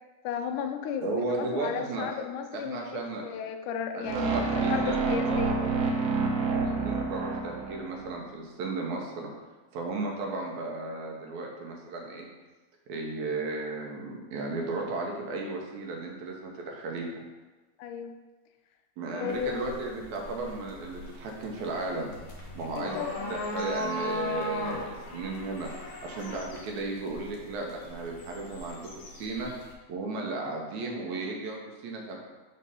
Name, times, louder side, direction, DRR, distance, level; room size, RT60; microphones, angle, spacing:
voice 1, 0.2-5.6 17.8-18.1 19.1-19.8 22.8-23.4, left 7 dB, 85° left, 6 dB, 2.1 m, -34 dB
voice 2, 1.0-2.1 2.5-3.2 3.9-6.0 6.5-9.3 9.7-12.3 12.9-17.1 19.0-23.0 23.3-25.7 26.0-29.5 29.9-32.2, right 3 dB, 75° right, 0 dB, 2.1 m, -35 dB
sound 1, 4.0-8.1, right 3 dB, 90° right, 2.3 m, -28 dB
sound 2, 19.3-29.7, left 1 dB, 60° left, 1.6 m, -38 dB
5.4 x 3.8 x 5.4 m, 1.2 s
omnidirectional pair, 3.5 m